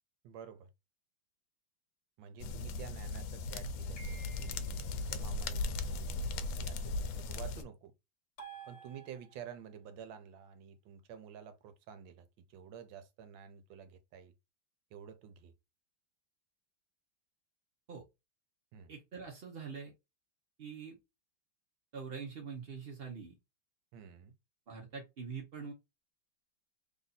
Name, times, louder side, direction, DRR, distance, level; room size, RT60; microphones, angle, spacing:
voice 1, 0.2-0.7 2.2-7.9 8.7-14.3 14.9-15.5 18.7-18.9 23.9-24.3, right 8 dB, 75° right, 1.5 m, -51 dB
sound 1, 2.4-7.6, left 3 dB, 80° left, 1.3 m, -37 dB
sound 2, 4.0-4.9 8.4-9.6, right 6 dB, 40° left, 1.4 m, -52 dB
voice 2, 18.9-19.9 20.6-21.0 21.9-23.3 24.7-25.7, right 5 dB, 60° right, 0.6 m, -44 dB
3.4 x 2.5 x 4.0 m
omnidirectional pair, 2.2 m